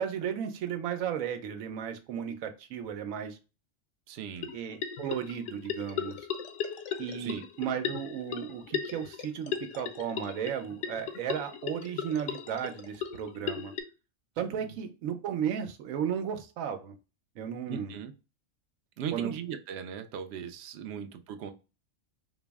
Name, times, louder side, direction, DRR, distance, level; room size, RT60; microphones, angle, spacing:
voice 1, 0.0-3.4 4.5-6.3 7.0-13.7 14.4-16.9 17.4-17.9 19.1-19.3, right 8 dB, 80° right, 1.0 m, -34 dB
voice 2, 4.1-4.5 7.2-7.4 14.6-14.8 17.7-18.1 19.0-21.5, right 8 dB, 65° right, 0.7 m, -38 dB
sound 1, 4.4-13.8, left 8 dB, 70° left, 0.9 m, -37 dB
4.0 x 2.0 x 3.4 m
omnidirectional pair, 1.4 m